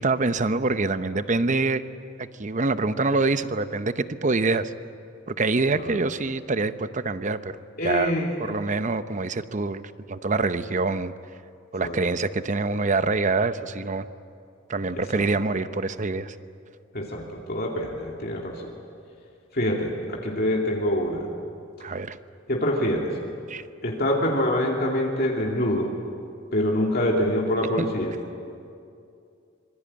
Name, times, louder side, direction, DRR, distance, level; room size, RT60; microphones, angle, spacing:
voice 1, 0.0-1.8 2.2-4.7 5.3-7.5 7.8-8.1 8.4-11.1 11.7-14.0 14.7-16.3 21.8-22.2 23.5-23.6, right 3 dB, 40° right, 12 dB, 0.8 m, -25 dB
voice 2, 7.8-8.5 11.8-12.0 15.1-15.3 16.9-18.7 19.5-21.3 22.5-23.1 23.8-25.9 26.5-28.1, left 1 dB, 55° left, -1 dB, 2.7 m, -25 dB
25.5 x 23.0 x 8.8 m, 2.5 s
head